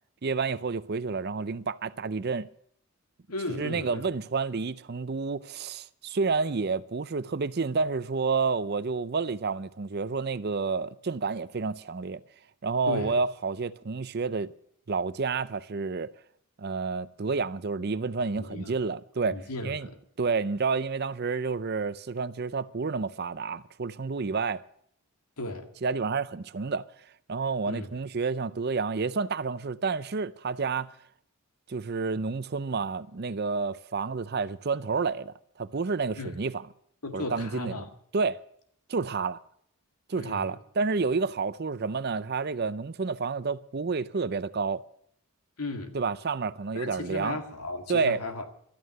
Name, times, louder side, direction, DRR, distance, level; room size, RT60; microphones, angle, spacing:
voice 1, 0.2-2.5 3.5-12.2 12.6-14.5 14.9-16.1 16.6-19.9 20.2-24.6 25.8-26.8 27.3-30.9 31.7-36.7 37.1-37.9 38.1-38.4 38.9-39.4 40.1-44.8 45.9-47.4 47.9-48.2, right 4 dB, 45° right, 0.5 m, -29 dB
voice 2, 3.3-4.0 12.9-13.2 18.4-18.7 19.3-19.9 25.4-25.7 27.7-27.9 36.2-36.3 37.0-37.9 40.2-40.5 45.6-46.0 46.7-48.5, left 2 dB, 90° left, 2.0 m, -35 dB
13.0 x 9.4 x 9.1 m
head